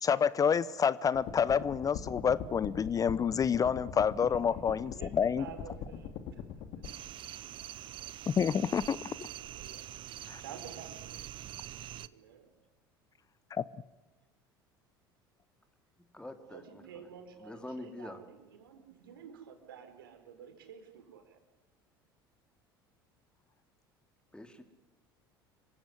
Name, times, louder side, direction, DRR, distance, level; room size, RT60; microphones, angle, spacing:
voice 1, 0.0-5.4 8.3-9.0 10.3-10.4 13.5-13.6, left 7 dB, 30° left, 19 dB, 0.7 m, -28 dB
sound 1, 1.1-6.9, left 8 dB, 55° left, 2.3 m, -42 dB
voice 2, 4.3-6.4 6.7-6.9 9.1-9.8 10.4-11.3 12.0-12.5 16.5-21.4, right 7 dB, 75° right, 6 dB, 4.4 m, -51 dB
sound 2, 6.8-12.1, right 12 dB, 45° right, 0.8 m, -45 dB
voice 3, 16.1-17.1 17.4-18.2 24.3-24.6, left 1 dB, 10° left, 7 dB, 3.0 m, -45 dB
26.5 x 16.0 x 9.9 m, 1.1 s
figure-of-eight pair, 65°, 12 cm